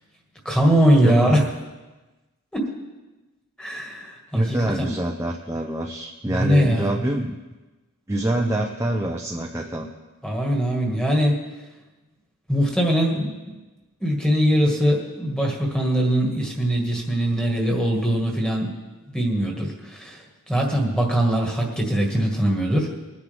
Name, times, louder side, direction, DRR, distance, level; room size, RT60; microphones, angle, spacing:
voice 1, 0.5-1.4 2.5-2.7 3.6-4.9 6.3-7.0 10.2-11.4 12.5-13.6 14.0-18.8 19.1-23.1, equal, 5° left, 0 dB, 1.9 m, -21 dB
voice 2, 1.0-1.3 4.3-7.4 8.1-9.9, right 1 dB, 15° right, 0 dB, 0.7 m, -25 dB
21.0 x 9.6 x 3.5 m, 1.2 s
head